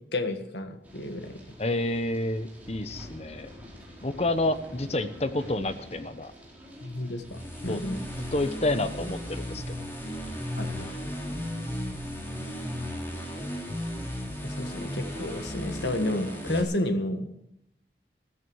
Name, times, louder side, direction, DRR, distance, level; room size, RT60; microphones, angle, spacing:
voice 1, 0.1-1.4 6.8-8.0 10.6-11.0 11.3-11.4 14.4-17.3, left 1 dB, 75° left, 7 dB, 1.7 m, -31 dB
sound 1, 0.8-9.5, left 1 dB, 10° right, 4.3 m, -47 dB
voice 2, 1.6-3.5 4.0-6.3 7.7-7.8 8.3-9.9, left 2 dB, 35° left, 11 dB, 1.0 m, -29 dB
sound 2, 7.2-16.6, equal, 15° left, 3.3 m, -35 dB
14.5 x 13.5 x 6.3 m, 0.78 s
head